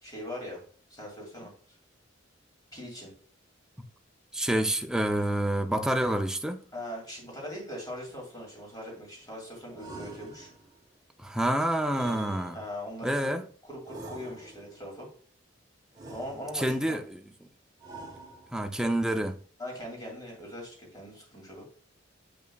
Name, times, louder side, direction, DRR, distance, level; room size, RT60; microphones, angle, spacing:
voice 1, 0.0-0.6 0.9-1.5 2.7-3.1 6.7-10.5 12.5-13.3 13.7-15.1 16.1-17.0 19.6-21.7, left 1 dB, 20° left, 2.3 m, -40 dB
voice 2, 4.3-6.6 11.2-12.6 13.0-13.4 16.5-17.2 18.5-19.4, right 1 dB, 5° right, 0.4 m, -28 dB
sound 1, 9.8-10.8 11.9-13.0 13.9-14.8 15.9-16.9 17.8-18.8, right 2 dB, 20° right, 1.2 m, -46 dB
7.8 x 5.4 x 2.3 m
head